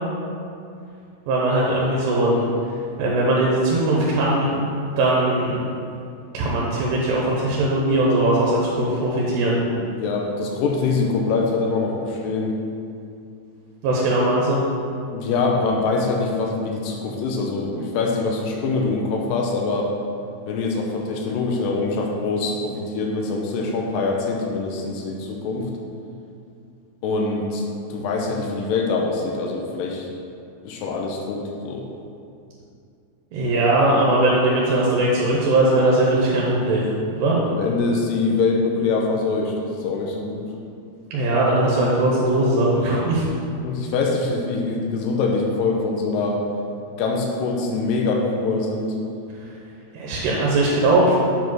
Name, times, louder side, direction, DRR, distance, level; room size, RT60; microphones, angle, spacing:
voice 1, 1.3-2.5 3.0-4.5 5.0-5.6 6.3-9.6 13.8-14.6 33.3-36.8 37.1-37.4 41.1-43.3 49.9-51.2, right 2 dB, 85° right, -4 dB, 3.1 m, -19 dB
voice 2, 9.8-12.6 15.1-19.9 20.5-25.7 27.0-27.6 27.9-30.1 30.7-31.8 37.5-40.5 43.6-46.5 47.0-49.0, left 3 dB, 80° left, 0 dB, 2.0 m, -24 dB
7.8 x 4.8 x 6.2 m, 2.5 s
omnidirectional pair, 4.8 m